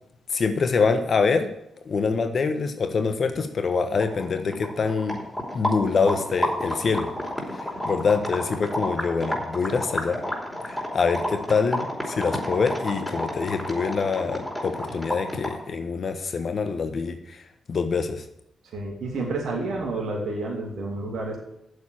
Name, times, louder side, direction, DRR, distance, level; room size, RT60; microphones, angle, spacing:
voice 1, 0.3-1.5 1.8-5.2 5.5-7.1 7.8-10.2 10.6-17.4 17.7-18.2, left 5 dB, 55° left, 7 dB, 1.3 m, -25 dB
sound 1, 4.0-15.7, left 1 dB, 10° left, 4.9 m, -30 dB
voice 2, 18.6-21.4, right 2 dB, 70° right, -2 dB, 2.6 m, -30 dB
9.5 x 7.4 x 8.6 m, 0.79 s
hypercardioid pair, 40°, 0 cm